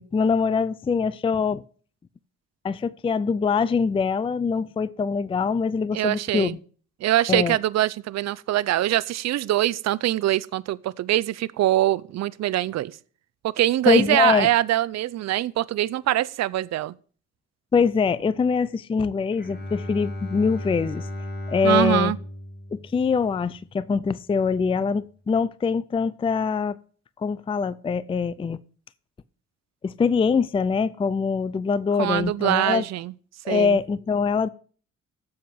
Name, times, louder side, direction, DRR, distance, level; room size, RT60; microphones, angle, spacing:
voice 1, 0.0-1.6 2.6-6.6 7.3-7.6 13.9-14.5 17.7-21.0 21.5-22.1 22.7-26.8 27.2-28.6 29.8-32.8 33.4-34.5, left 5 dB, 20° left, 0.4 m, -23 dB
voice 2, 5.9-6.6 7.0-12.9 13.4-16.9 21.6-22.2 32.0-33.1 33.5-33.8, right 14 dB, 60° right, 0.6 m, -23 dB
Bowed string instrument, 19.3-23.8, left 1 dB, 35° left, 2.1 m, -35 dB
7.5 x 7.3 x 7.7 m
cardioid pair, 90°, 30 cm